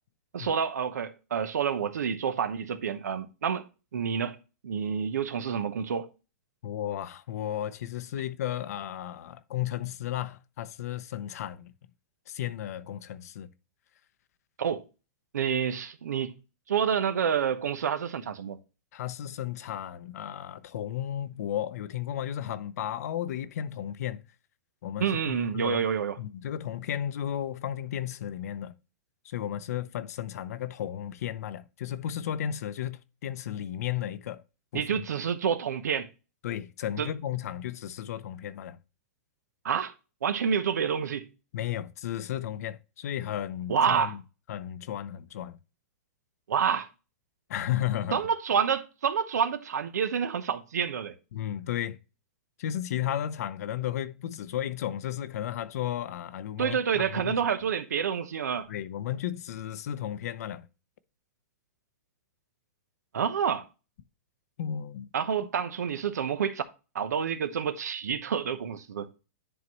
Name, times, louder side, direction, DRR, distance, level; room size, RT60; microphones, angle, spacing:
voice 1, 0.3-3.7 3.9-4.4 4.6-6.1 14.6-14.8 15.3-16.4 16.7-18.6 25.0-26.2 34.7-36.1 37.0-37.1 39.6-39.9 40.2-41.3 43.7-44.2 46.5-46.9 48.1-51.1 56.6-58.7 63.1-63.7 65.1-66.6 66.9-69.1, right 7 dB, 90° right, 0.9 m, -28 dB
voice 2, 6.6-11.7 12.3-13.5 18.9-24.3 24.8-25.8 26.2-28.8 29.2-34.4 34.7-34.8 36.4-38.8 41.5-44.2 44.5-45.6 47.5-48.2 51.3-52.0 52.6-57.4 58.7-60.7 64.6-65.1, left 11 dB, 70° left, 0.6 m, -34 dB
10.0 x 4.0 x 3.0 m
hypercardioid pair, 140°, 9 cm